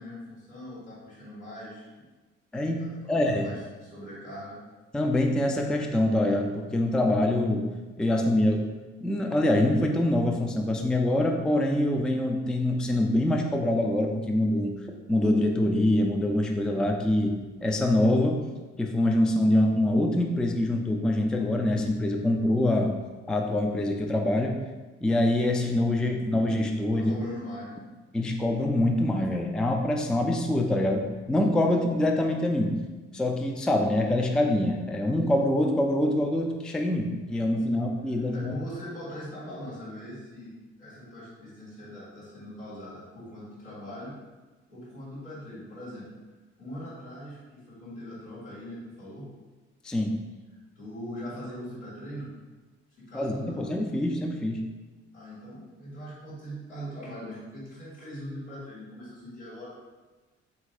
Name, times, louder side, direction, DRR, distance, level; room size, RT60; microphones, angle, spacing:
voice 1, 0.0-2.0 2.8-4.6 26.9-27.8 37.7-37.8 38.1-40.5 40.8-44.2 44.7-46.0 46.6-49.2 50.7-52.3 53.0-53.8 55.1-59.7, equal, 85° left, -10 dB, 1.4 m, -41 dB
voice 2, 2.5-3.5 4.9-7.7 8.0-8.7 9.0-18.4 18.8-22.9 23.3-24.6 25.0-27.1 28.1-32.8 33.1-38.5 49.8-50.2 53.1-54.7, left 1 dB, ahead, 2 dB, 0.4 m, -25 dB
3.7 x 2.6 x 4.3 m, 1.3 s
figure-of-eight pair, 45°, 35 cm